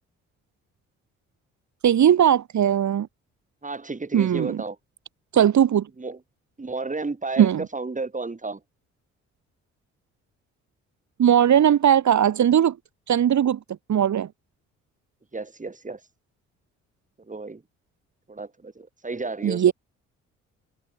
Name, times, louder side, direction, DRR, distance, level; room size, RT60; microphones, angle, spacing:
voice 1, 1.8-3.1 4.1-4.6 5.3-5.9 7.4-7.7 11.2-12.8 13.1-13.6 13.9-14.3 19.4-19.7, right 9 dB, 55° right, 2.2 m, -19 dB
voice 2, 3.6-4.8 6.0-6.2 6.6-8.6 15.3-16.0 17.3-17.6 18.3-19.7, right 3 dB, 25° right, 3.5 m, -32 dB
hypercardioid pair, 55°, 33 cm